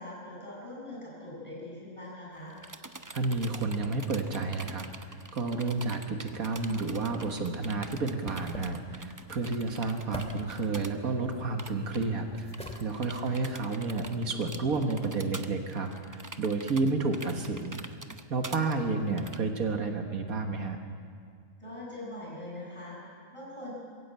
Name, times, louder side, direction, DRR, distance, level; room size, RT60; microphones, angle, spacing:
voice 1, 0.0-2.6 13.1-13.3 21.6-23.7, left 1 dB, 20° left, -6 dB, 7.7 m, -42 dB
sound 1, 2.4-10.9 11.2-11.3 11.6-12.1 12.5-19.4, right 2 dB, 20° right, 0.6 m, -45 dB
voice 2, 3.1-12.5 12.8-17.8 18.3-20.8, right 3 dB, 75° right, 5 dB, 1.9 m, -31 dB
sound 2, 7.0-14.2, left 1 dB, 5° left, 2.4 m, -47 dB
22.5 x 15.5 x 8.9 m, 2.1 s
omnidirectional pair, 1.5 m